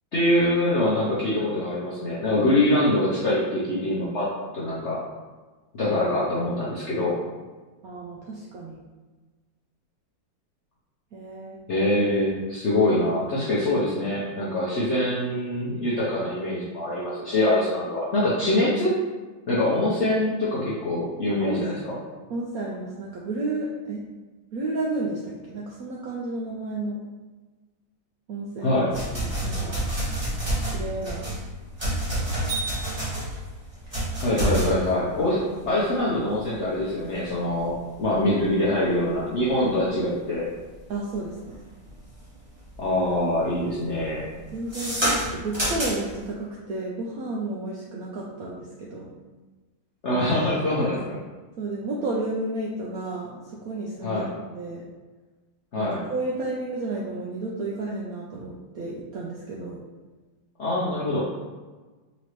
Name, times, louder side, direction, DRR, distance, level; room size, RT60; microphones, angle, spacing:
voice 1, 0.1-5.0 5.7-7.2 11.7-18.9 19.5-21.9 28.6-28.9 34.2-40.5 42.8-44.2 50.0-51.0 54.0-54.3 55.7-56.0 60.6-61.2, left 1 dB, 60° left, -7 dB, 0.7 m, -24 dB
voice 2, 7.8-8.8 11.1-11.6 21.4-21.6 22.3-24.0 24.5-27.0 28.3-29.7 30.6-31.2 40.9-41.6 44.5-49.1 50.8-51.0 51.6-54.2 54.5-54.8 55.7-59.8, right 2 dB, 75° right, -4 dB, 0.8 m, -32 dB
sound 1, 28.9-42.2 42.6-43.1 43.3-46.2, right 1 dB, 15° right, 1.0 m, -29 dB
4.2 x 2.9 x 3.0 m, 1.3 s
omnidirectional pair, 2.0 m